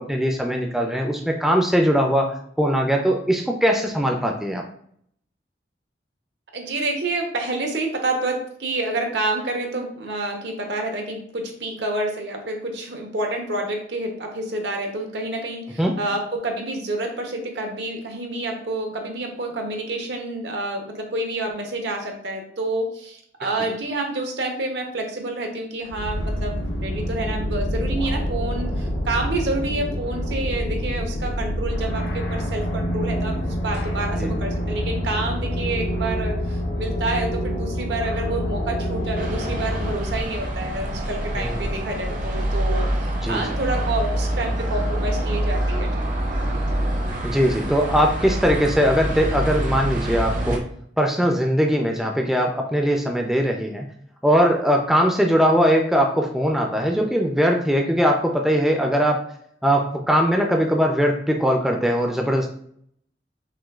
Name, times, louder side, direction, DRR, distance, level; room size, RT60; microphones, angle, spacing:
voice 1, 0.0-4.6 15.8-15.9 34.2-34.3 41.4-41.7 43.2-43.4 47.2-50.6 51.0-53.9 54.2-59.2 59.6-62.5, equal, ahead, 1 dB, 0.3 m, -20 dB
voice 2, 6.5-46.1, right 2 dB, 80° right, 3 dB, 0.8 m, -28 dB
sound 1, 25.9-39.9, equal, 85° left, 0.8 m, -26 dB
sound 2, 39.2-50.6, right 1 dB, 45° right, 0.6 m, -26 dB
6.0 x 2.2 x 2.3 m, 0.65 s
head